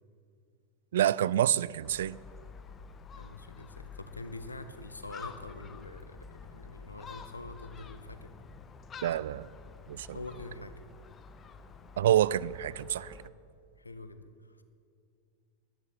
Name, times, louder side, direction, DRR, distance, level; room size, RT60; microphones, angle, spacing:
voice 1, 0.9-2.2 9.0-9.5 9.9-10.2 12.0-13.2, right 11 dB, 60° right, 0.3 m, -27 dB
Gull seagull, 1.8-13.3, left 5 dB, 20° left, 0.8 m, -49 dB
voice 2, 3.1-8.3 10.1-10.7 13.8-14.6, left 2 dB, 80° left, 0.9 m, -45 dB
12.0 x 10.0 x 9.5 m
figure-of-eight pair, 90°, 0 cm